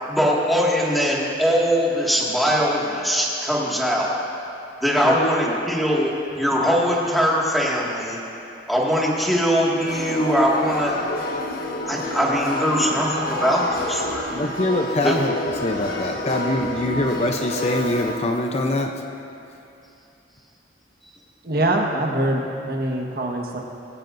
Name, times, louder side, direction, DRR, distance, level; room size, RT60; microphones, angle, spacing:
voice 1, 0.1-4.2 4.8-8.2 8.7-11.0 11.9-14.5 15.0-15.2, equal, ahead, -5 dB, 2.0 m, -21 dB
sound 1, 9.8-18.2, left 1 dB, 50° left, 1.4 m, -29 dB
voice 2, 14.3-15.3 15.6-18.9, left 2 dB, 35° left, 3 dB, 0.6 m, -24 dB
voice 3, 21.4-23.6, right 1 dB, 55° right, 1 dB, 1.5 m, -23 dB
21.5 x 16.5 x 2.6 m, 2.7 s
head